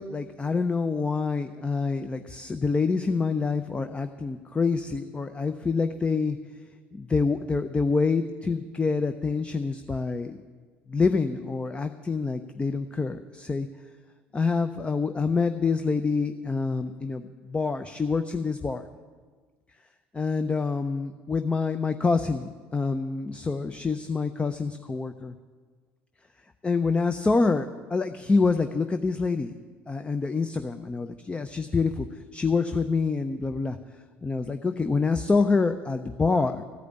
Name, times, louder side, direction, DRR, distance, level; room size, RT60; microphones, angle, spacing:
voice 1, 0.0-6.4 6.9-10.4 10.9-13.7 14.3-18.8 20.1-25.4 26.6-29.5 29.9-32.1 32.3-33.8 34.2-36.6, left 4 dB, 15° left, 8 dB, 0.5 m, -26 dB
14.0 x 5.0 x 9.2 m, 1.5 s
figure-of-eight pair, 65°, 7 cm